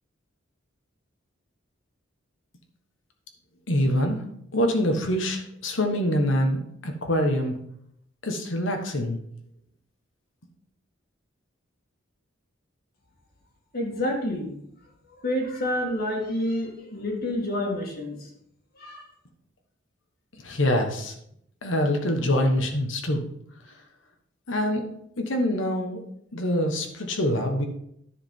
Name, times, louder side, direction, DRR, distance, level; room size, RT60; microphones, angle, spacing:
voice 1, 3.7-4.2 4.5-7.6 8.2-9.2 20.4-21.1 21.6-23.2 24.5-24.9 25.2-26.0 26.3-27.7, equal, 70° left, 4 dB, 1.4 m, -25 dB
voice 2, 13.7-14.5 15.2-18.3 18.8-19.0, left 1 dB, 50° left, 0 dB, 2.1 m, -28 dB
10.5 x 5.0 x 5.4 m, 0.71 s
head